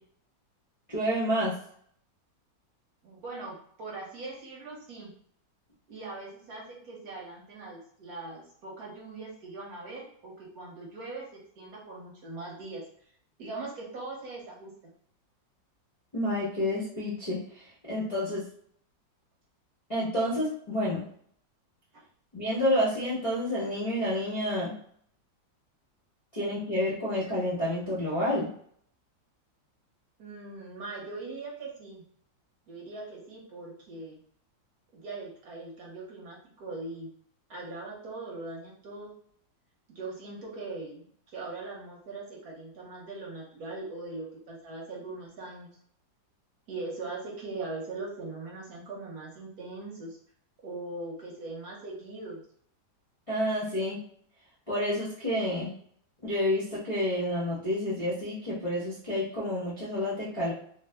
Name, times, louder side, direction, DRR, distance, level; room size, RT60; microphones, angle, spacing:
voice 1, 0.9-1.6 16.1-18.5 19.9-21.1 22.3-24.7 26.3-28.5 53.3-54.0 54.7-55.7 56.2-60.5, left 1 dB, 40° left, -7 dB, 0.5 m, -29 dB
voice 2, 3.0-5.1 5.9-12.8 13.4-14.7 30.2-32.0 32.7-34.2 34.9-37.1 37.5-39.1 39.9-45.8 46.7-50.2 50.6-52.4, right 3 dB, 60° right, -3 dB, 1.2 m, -41 dB
3.1 x 2.0 x 3.3 m, 0.62 s
omnidirectional pair, 2.0 m